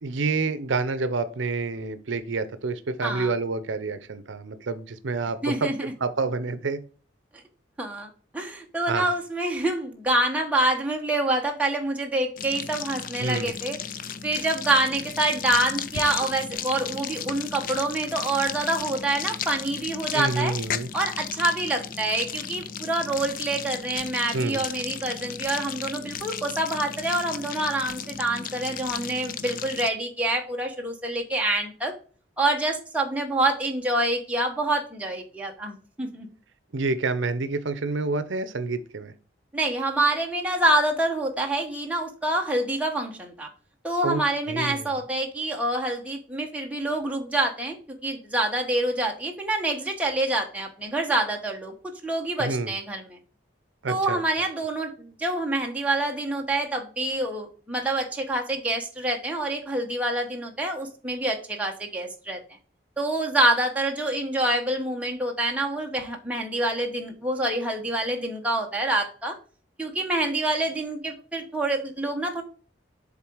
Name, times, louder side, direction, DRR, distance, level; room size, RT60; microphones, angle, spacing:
voice 1, 0.0-6.8 8.9-9.1 13.2-13.5 20.1-20.9 24.3-24.6 36.7-39.1 44.0-44.2 44.5-44.9 52.4-52.7 53.8-54.2, right 3 dB, 75° right, 12 dB, 0.6 m, -28 dB
voice 2, 5.4-5.9 7.8-13.8 14.2-20.6 20.9-31.9 32.4-36.3 39.5-43.5 43.8-51.7 52.0-53.2 53.9-62.4 63.0-69.4 69.8-72.4, right 1 dB, 5° right, 1 dB, 1.1 m, -26 dB
sound 1, 12.4-29.9, left 7 dB, 45° left, 0.4 m, -35 dB
7.4 x 3.7 x 4.6 m, 0.40 s
head